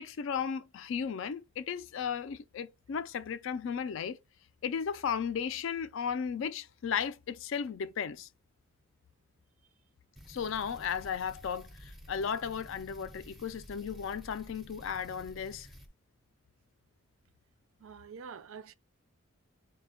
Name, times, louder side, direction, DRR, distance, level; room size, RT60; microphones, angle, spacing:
voice 1, 0.0-4.2 4.6-8.3 10.3-15.7, left 7 dB, 60° left, 0.3 m, -35 dB
sound 1, 10.2-15.9, equal, ahead, 0.5 m, -52 dB
voice 2, 17.8-18.7, right 6 dB, 70° right, 0.4 m, -46 dB
4.2 x 2.2 x 3.5 m
head